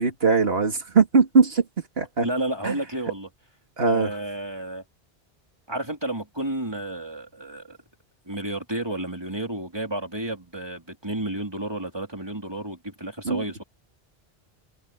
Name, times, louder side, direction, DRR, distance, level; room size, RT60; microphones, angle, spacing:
voice 1, 0.0-1.6 2.0-2.3 2.6-2.7 3.8-4.1 13.2-13.4, right 4 dB, 75° right, 2.7 m, -20 dB
voice 2, 2.2-3.3 3.9-4.8 5.7-7.8 8.3-13.6, right 1 dB, 25° right, 3.9 m, -31 dB
omnidirectional pair, 1.0 m